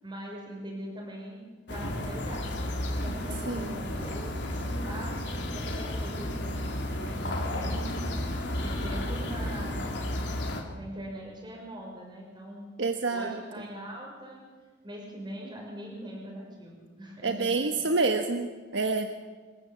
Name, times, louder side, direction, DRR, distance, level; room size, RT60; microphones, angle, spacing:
voice 1, 0.0-6.3 6.5-7.9 8.6-9.8 10.7-12.7 13.1-14.4 14.8-17.8, equal, 25° right, -1 dB, 6.1 m, -42 dB
sound 1, 1.7-10.6, left 1 dB, 70° left, 3.7 m, -32 dB
sound 2, 3.0-10.1, right 1 dB, 60° right, 2.5 m, -44 dB
voice 2, 3.5-3.8 12.8-13.4 17.2-19.1, right 3 dB, 85° right, 6 dB, 1.4 m, -28 dB
27.0 x 14.0 x 8.5 m, 1.5 s
head